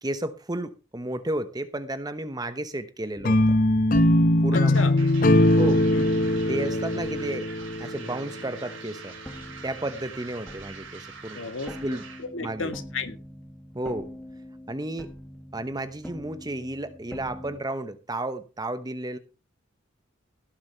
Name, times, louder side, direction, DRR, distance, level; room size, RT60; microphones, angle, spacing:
voice 1, 0.0-3.4 4.4-4.9 5.6-5.8 6.5-7.5 7.8-9.2 9.6-11.5 11.8-12.0 12.4-12.7 13.7-14.1 14.7-15.1 15.5-19.2, right 1 dB, 20° right, 11 dB, 1.0 m, -32 dB
sound 1, 3.2-8.3, left 1 dB, 45° left, 0.7 m, -21 dB
sound 2, 3.2-8.9 9.2-17.6, left 1 dB, 5° left, 1.4 m, -43 dB
voice 2, 4.5-4.9 5.9-6.1 11.3-11.7 12.3-13.2, left 4 dB, 85° left, 7 dB, 2.0 m, -33 dB
sound 3, 4.6-12.3, right 5 dB, 75° right, 4.2 m, -44 dB
17.5 x 7.2 x 4.5 m, 0.31 s
head